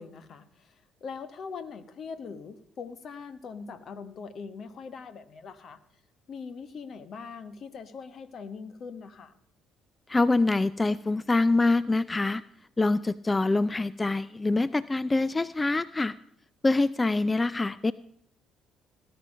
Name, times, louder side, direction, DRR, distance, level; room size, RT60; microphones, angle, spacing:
voice 1, 0.0-5.8 6.3-9.3, left 5 dB, 55° left, 12 dB, 1.3 m, -42 dB
voice 2, 10.1-12.4 12.8-16.1 16.6-17.9, left 2 dB, 20° left, 18 dB, 0.4 m, -25 dB
17.5 x 10.5 x 5.5 m, 0.72 s
hypercardioid pair, 55°, 0 cm